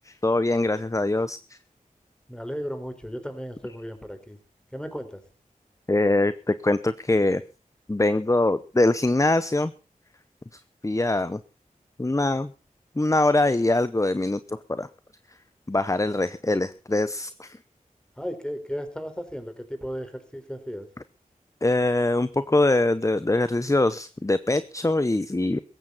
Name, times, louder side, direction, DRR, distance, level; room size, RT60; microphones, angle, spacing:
voice 1, 0.1-1.6 5.9-7.4 7.9-9.7 10.8-11.4 12.0-12.5 13.0-14.9 15.7-17.6 21.6-25.6, left 2 dB, 20° left, 14 dB, 0.8 m, -23 dB
voice 2, 2.3-4.4 4.7-5.2 18.2-20.9, equal, 5° left, 8 dB, 4.6 m, -35 dB
17.0 x 14.5 x 4.1 m, 0.34 s
cardioid pair, 45°, 15 cm